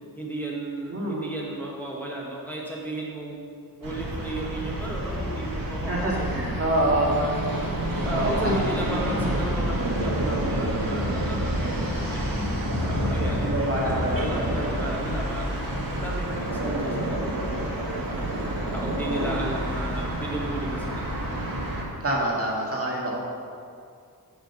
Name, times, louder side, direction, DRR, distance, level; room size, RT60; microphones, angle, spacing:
voice 1, 0.2-3.4 3.7-6.5 7.0-7.4 8.0-12.3 12.8-18.2 18.7-21.1 23.1-23.2, right 1 dB, 5° left, -3 dB, 1.0 m, -35 dB
voice 2, 0.9-1.3 5.9-7.1 8.1-8.5 13.3-14.7 16.6-17.0 19.1-19.6 22.0-23.2, right 1 dB, 40° right, -3 dB, 1.9 m, -27 dB
sound 1, 3.8-21.8, right 1 dB, 65° right, 1.5 m, -30 dB
Growling, 7.0-8.7 9.1-12.1 12.6-19.4 19.7-19.8, right 2 dB, 85° right, 1.2 m, -33 dB
sound 2, 7.5-14.6, left 1 dB, 40° left, 2.3 m, -31 dB
7.3 x 5.1 x 6.7 m, 2.3 s
wide cardioid pair, 80°, 36 cm